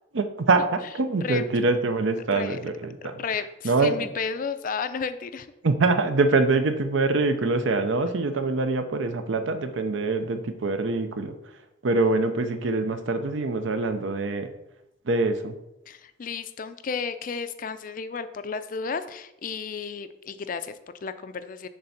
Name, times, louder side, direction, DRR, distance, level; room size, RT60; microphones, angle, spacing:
voice 1, 0.1-3.1 3.6-4.0 5.6-11.3 11.8-14.5 15.1-15.5, right 3 dB, 70° right, 8 dB, 0.6 m, -24 dB
voice 2, 3.0-5.5 15.9-21.7, left 5 dB, 45° left, 11 dB, 0.4 m, -33 dB
6.6 x 3.4 x 5.7 m, 0.87 s
head